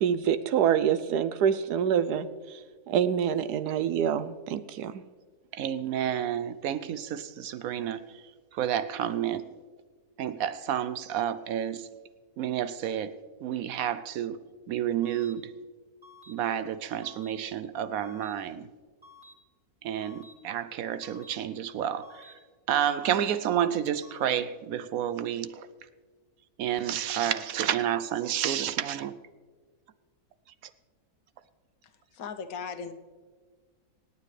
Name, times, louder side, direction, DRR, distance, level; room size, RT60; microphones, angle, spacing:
voice 1, 0.0-2.6 2.9-5.0, right 8 dB, 90° right, 1.2 m, -26 dB
voice 2, 5.5-8.0 8.5-9.5 10.2-11.9 12.4-14.4 14.7-15.5 16.3-18.7 19.8-22.2 22.7-25.7 26.6-29.1, right 10 dB, 70° right, 0.9 m, -30 dB
sound 1, 15.0-15.3 16.0-16.3 17.0-17.3 18.0-18.3 19.0-19.3 20.0-20.3 21.0-21.3 22.0-22.3 23.0-23.3 24.0-24.3, left 2 dB, 15° right, 2.6 m, -52 dB
voice 3, 31.8-32.9, left 6 dB, 70° left, 1.2 m, -38 dB
26.5 x 9.5 x 3.3 m
omnidirectional pair, 1.7 m